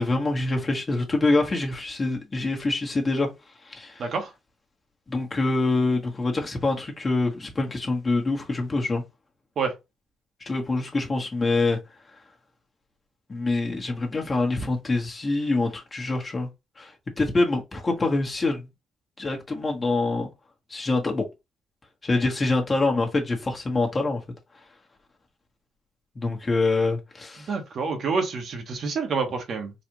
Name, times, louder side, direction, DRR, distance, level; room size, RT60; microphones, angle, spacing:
voice 1, 0.0-3.3 3.6-4.0 5.1-9.0 10.4-11.8 13.3-16.5 16.8-18.7 19.2-20.3 20.7-21.2 22.0-24.2 26.1-27.5, left 2 dB, 30° left, 1.2 m, -25 dB
voice 2, 4.0-4.3 9.6-9.7 27.5-29.7, right 4 dB, 60° right, 1.1 m, -27 dB
4.1 x 2.4 x 2.9 m
cardioid pair, 90°, 0 cm